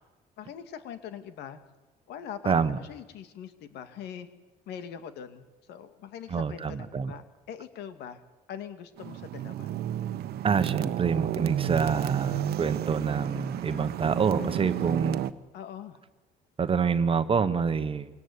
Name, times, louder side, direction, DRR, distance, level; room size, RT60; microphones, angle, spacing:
voice 1, 0.4-1.6 2.1-4.3 4.7-8.2 8.5-9.7 13.7-13.9 14.3-14.7 15.5-16.0, left 9 dB, 80° left, 10 dB, 2.3 m, -42 dB
voice 2, 2.4-2.8 6.3-7.1 10.4-15.2 16.6-18.1, right 6 dB, 30° right, 11 dB, 1.3 m, -27 dB
sound 1, 9.0-15.3, right 11 dB, 70° right, 1.1 m, -31 dB
23.5 x 18.0 x 9.8 m, 1.1 s
cardioid pair, 110°, 17 cm